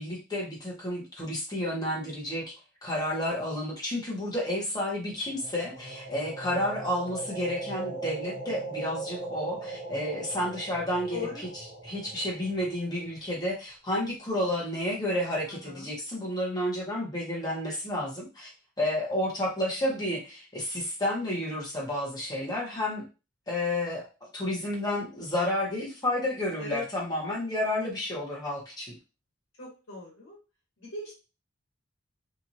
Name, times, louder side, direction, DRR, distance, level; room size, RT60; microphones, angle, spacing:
voice 1, 0.0-2.5 2.8-11.2 11.8-18.5 18.8-23.0 23.5-24.1 24.3-28.9, left 1 dB, 20° left, -3 dB, 1.0 m, -31 dB
sound 1, 5.2-13.2, right 2 dB, 50° left, 1.3 m, -39 dB
voice 2, 11.1-11.5 15.5-15.9 26.6-26.8 29.6-30.4 30.8-31.1, left 4 dB, 75° left, -4 dB, 1.2 m, -39 dB
2.9 x 2.6 x 2.6 m, 0.30 s
head